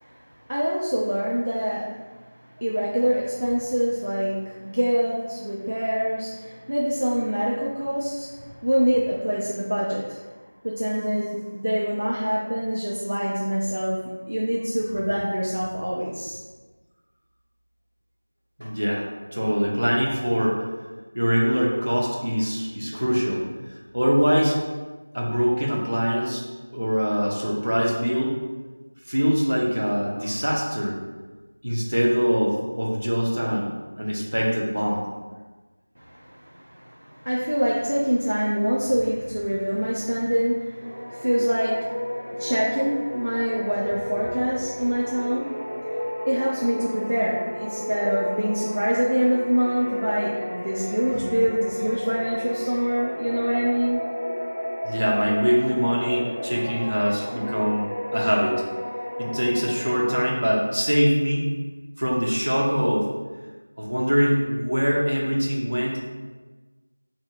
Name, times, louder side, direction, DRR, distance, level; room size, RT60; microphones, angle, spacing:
voice 1, 0.5-1.9 2.6-10.2 10.6-14.0 14.3-16.4 36.0-54.0, equal, 45° right, -6 dB, 0.5 m, -25 dB
voice 2, 18.6-19.0 19.3-20.6 21.1-23.4 23.9-24.6 25.1-26.4 26.7-28.4 29.1-31.0 31.6-33.7 34.0-35.0 50.4-50.5 53.5-53.6 54.8-58.5 59.2-61.5 62.0-63.1 63.8-66.0, equal, 65° right, -2 dB, 0.9 m, -23 dB
sound 1, 40.8-60.2, equal, 30° left, 0.8 m, -32 dB
3.0 x 2.8 x 3.6 m, 1.3 s
figure-of-eight pair, 175°, 0 cm